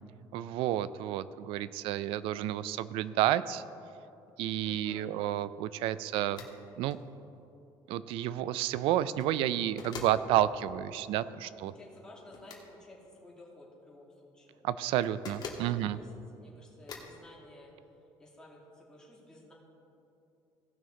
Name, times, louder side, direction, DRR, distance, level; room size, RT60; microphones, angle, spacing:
voice 1, 0.3-3.6 4.4-6.5 6.8-7.0 7.9-11.7 14.6-16.0, right 12 dB, 85° right, 16 dB, 0.4 m, -30 dB
voice 2, 4.6-5.1 11.4-14.6 15.3-17.7 18.2-19.5, left 1 dB, 10° left, -4 dB, 2.3 m, -54 dB
sound 1, 6.3-6.6 6.9-7.0 9.0-9.3 9.8-10.2 12.3-12.7 15.0-15.7 16.9-17.2, left 4 dB, 50° left, 1.4 m, -43 dB
17.0 x 6.1 x 3.7 m, 2.7 s
cardioid pair, 125°, 9 cm